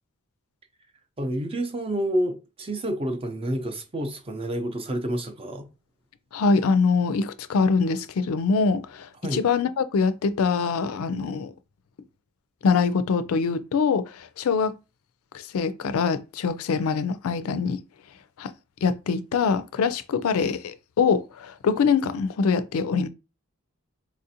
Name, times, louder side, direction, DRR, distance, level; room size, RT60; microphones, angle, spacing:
voice 1, 1.2-5.7 9.2-9.4, right 1 dB, 25° right, 0.5 m, -29 dB
voice 2, 6.3-11.5 12.6-14.7 15.5-17.8 18.4-18.5 18.8-23.1, left 5 dB, 70° left, 0.4 m, -24 dB
4.1 x 2.5 x 2.7 m
head